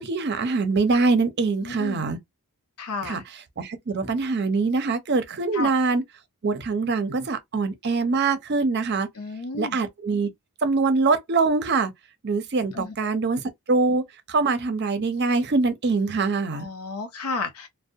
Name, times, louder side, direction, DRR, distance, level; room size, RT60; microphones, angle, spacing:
voice 1, 0.0-2.2 3.0-3.2 3.6-6.0 6.4-9.1 9.6-10.3 10.6-11.9 12.2-13.4 13.7-14.0 14.3-16.7, right 4 dB, 50° right, 0.5 m, -23 dB
voice 2, 1.6-2.0 2.8-3.2 5.5-5.7 9.2-9.8 12.7-13.1 16.5-17.7, left 3 dB, 85° left, 0.6 m, -32 dB
2.5 x 2.1 x 2.5 m
head